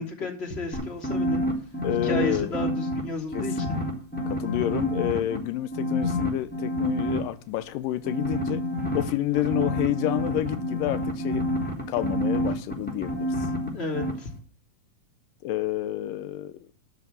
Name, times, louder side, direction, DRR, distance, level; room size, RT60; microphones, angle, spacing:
voice 1, 0.0-1.4 2.0-3.8 13.7-14.3, left 3 dB, 20° left, 3.0 m, -32 dB
sound 1, 0.7-3.0 3.3-5.4 5.7-7.2 8.0-13.7 13.9-14.1, equal, 5° left, 3.4 m, -28 dB
voice 2, 1.8-2.6 3.3-3.8 4.3-8.6 8.9-11.4 11.9-13.3 15.4-16.7, left 13 dB, 85° left, 2.4 m, -29 dB
12.5 x 6.7 x 6.9 m
omnidirectional pair, 3.9 m